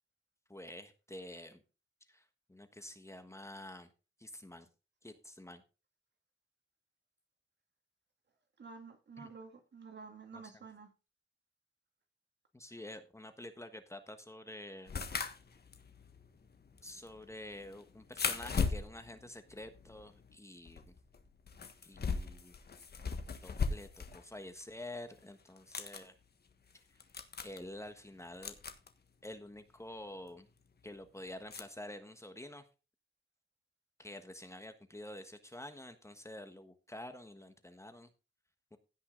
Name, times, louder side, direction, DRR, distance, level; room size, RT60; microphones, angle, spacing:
voice 1, 0.5-1.6 2.1-3.9 4.2-4.7 5.0-5.6 9.2-9.3 10.3-10.6 12.5-14.9 16.8-20.8 21.8-22.5 23.4-26.1 27.4-28.6 29.2-30.5 30.8-32.7 34.0-38.1 38.7-38.8, left 1 dB, 15° left, 8 dB, 1.3 m, -48 dB
voice 2, 8.6-10.9, right 5 dB, 55° right, 5 dB, 2.4 m, -50 dB
sound 1, 14.9-20.4 20.7-24.2 24.6-24.7 25.5-26.0 26.7-26.8 27.0-27.6 28.4-28.9 30.3-30.4 31.5-31.6, left 5 dB, 50° left, 1.4 m, -38 dB
16.5 x 5.8 x 3.9 m, 0.32 s
cardioid pair, 90°, 21 cm